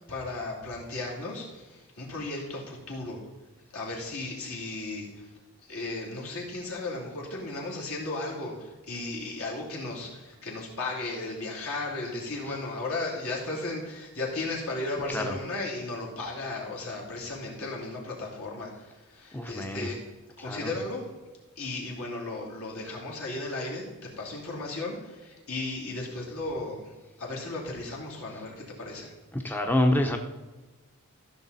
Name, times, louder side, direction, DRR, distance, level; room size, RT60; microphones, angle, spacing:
voice 1, 0.1-3.2 3.7-5.3 5.6-20.0 20.4-21.0 21.6-29.1, left 2 dB, 70° left, -3 dB, 3.1 m, -35 dB
voice 2, 19.3-19.9 20.4-20.7 29.4-30.2, left 1 dB, 10° left, 4 dB, 0.6 m, -26 dB
14.5 x 6.6 x 4.1 m, 1.2 s
head